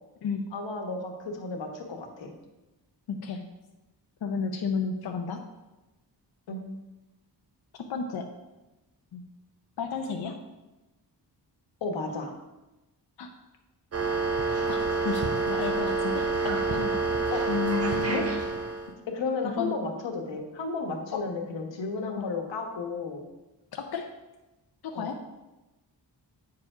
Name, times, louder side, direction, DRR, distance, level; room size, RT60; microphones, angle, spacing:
voice 1, 0.5-2.3 6.5-6.6 11.8-12.3 17.3-17.4 18.0-18.3 19.1-23.3 24.9-25.1, left 3 dB, 90° left, 4 dB, 1.3 m, -33 dB
voice 2, 3.1-3.4 4.2-5.4 7.8-8.3 9.1-9.2 9.8-10.4 13.2-13.3 14.7-17.0 17.5-18.4 19.4-19.8 21.1-21.2 22.2-22.3 23.7-24.1 24.8-25.2, left 5 dB, 60° left, 3 dB, 0.7 m, -32 dB
sound 1, 13.9-18.9, right 4 dB, 35° right, 0.8 m, -27 dB
8.1 x 4.8 x 4.9 m, 1.0 s
wide cardioid pair, 175°, 43 cm